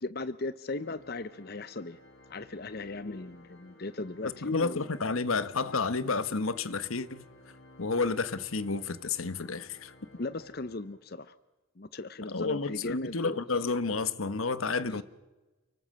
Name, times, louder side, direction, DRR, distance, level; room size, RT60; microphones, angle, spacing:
voice 1, 0.0-2.0 2.3-4.8 10.2-11.3 11.8-13.4 14.8-15.0, left 2 dB, 45° left, 0.7 m, -37 dB
Organ, 0.6-11.2, left 1 dB, 65° left, 4.8 m, -56 dB
voice 2, 4.4-7.2 7.8-9.9 12.3-15.0, left 4 dB, 80° left, 1.2 m, -30 dB
29.5 x 19.0 x 7.6 m
head